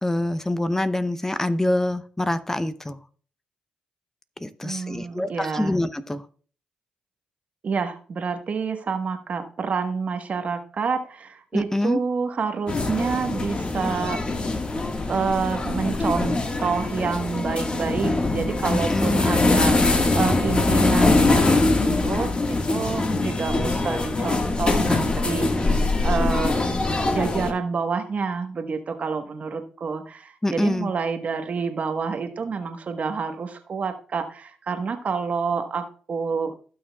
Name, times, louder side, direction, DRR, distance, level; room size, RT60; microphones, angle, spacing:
voice 1, 0.0-3.0 4.4-6.3 11.5-12.0 18.8-19.4 30.4-30.9, left 1 dB, 15° left, 0.7 m, -25 dB
voice 2, 4.6-5.8 7.6-14.2 15.1-26.5 27.1-36.6, right 5 dB, 55° right, 1.2 m, -28 dB
sound 1, 12.7-27.5, left 2 dB, 35° left, 1.6 m, -23 dB
16.0 x 6.3 x 2.3 m
supercardioid pair, 50°, 3 cm